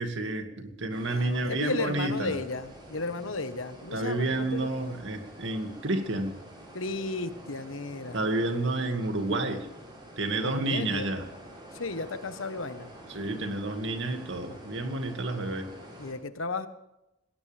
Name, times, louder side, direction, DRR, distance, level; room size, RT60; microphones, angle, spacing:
voice 1, 0.0-2.4 3.9-6.3 8.1-9.7 10.2-11.3 13.1-15.7, right 2 dB, 65° right, 5 dB, 2.2 m, -30 dB
sound 1, 0.9-16.1, right 1 dB, 25° right, 6.3 m, -48 dB
voice 2, 1.1-4.7 6.7-8.2 10.4-11.1 11.7-12.9 16.0-16.7, left 3 dB, 75° left, 10 dB, 1.3 m, -34 dB
19.5 x 18.0 x 3.5 m, 0.88 s
head